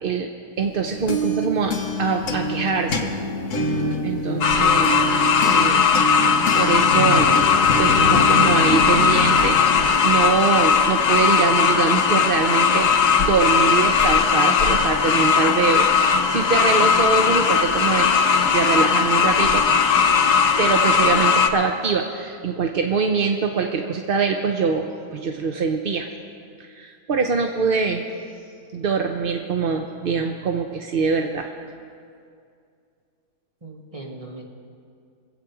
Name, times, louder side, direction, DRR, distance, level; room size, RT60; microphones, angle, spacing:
voice 1, 0.0-0.3 0.6-3.1 4.0-5.1 5.4-5.9 6.5-7.3 7.8-18.1 18.4-19.7 20.6-26.1 26.6-28.0 28.7-31.5, right 5 dB, 55° right, 4 dB, 0.6 m, -23 dB
sound 1, 0.7-10.4, equal, 55° left, 1.4 m, -26 dB
sound 2, 4.4-21.5, left 6 dB, 85° left, 1.4 m, -18 dB
voice 2, 33.6-34.4, right 2 dB, 20° right, -2 dB, 2.0 m, -40 dB
24.0 x 8.4 x 4.8 m, 2.4 s
omnidirectional pair, 1.6 m